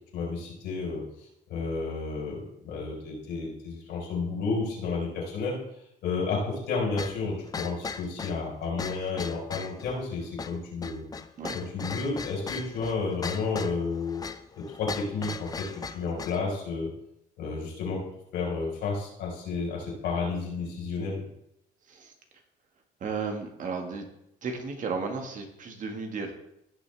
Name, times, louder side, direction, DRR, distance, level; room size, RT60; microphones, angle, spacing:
voice 1, 0.1-1.0 1.5-5.6 6.0-11.0 11.5-14.2 14.5-15.7 15.9-16.9 17.4-21.2, left 4 dB, 80° left, -2 dB, 4.7 m, -31 dB
sound 1, 7.0-16.4, left 5 dB, 20° left, 0.5 m, -38 dB
voice 2, 23.0-24.0 24.4-26.3, right 4 dB, 50° right, 4 dB, 1.9 m, -34 dB
16.5 x 6.1 x 3.5 m, 0.79 s
cardioid pair, 110°, 17 cm